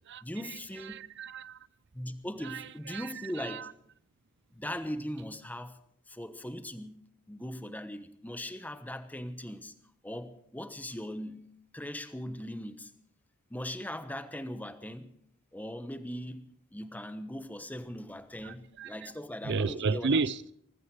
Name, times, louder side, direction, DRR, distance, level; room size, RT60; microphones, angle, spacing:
voice 1, 0.2-1.0 1.9-3.7 4.5-5.8 6.1-7.0 7.3-9.7 10.0-11.4 11.7-12.9 13.5-15.1 15.5-20.2, left 1 dB, 10° left, 1.0 m, -39 dB
voice 2, 0.9-1.6 2.4-3.1 3.4-3.7 18.4-19.1 19.4-20.5, right 4 dB, 55° right, 0.6 m, -33 dB
19.0 x 15.5 x 4.7 m
head